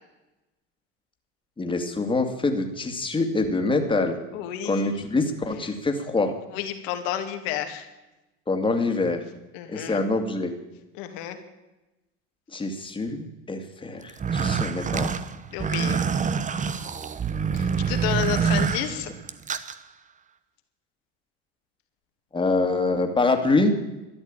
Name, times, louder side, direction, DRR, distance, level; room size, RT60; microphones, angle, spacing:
voice 1, 1.6-4.2 4.6-6.3 8.5-9.2 9.7-10.5 12.5-15.1 22.3-23.7, left 3 dB, 15° left, 5 dB, 2.4 m, -25 dB
voice 2, 4.3-4.9 6.5-7.9 9.5-10.0 11.0-11.4 15.5-16.0 17.5-19.1, left 11 dB, 70° left, 6 dB, 2.3 m, -31 dB
sound 1, 14.1-19.8, right 6 dB, 25° right, 1.0 m, -26 dB
13.0 x 10.5 x 8.9 m, 1.0 s
hypercardioid pair, 90°, 30 cm